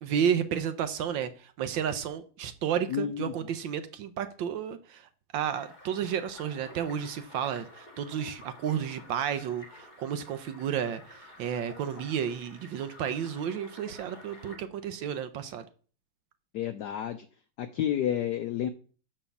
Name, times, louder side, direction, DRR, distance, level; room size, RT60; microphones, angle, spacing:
voice 1, 0.0-15.7, right 8 dB, 70° right, 1.3 m, -32 dB
voice 2, 2.9-3.3 16.5-17.2 17.6-18.7, left 10 dB, 80° left, 0.9 m, -30 dB
sound 1, 5.5-14.6, left 1 dB, 20° left, 1.7 m, -51 dB
6.1 x 5.5 x 7.0 m
omnidirectional pair, 2.4 m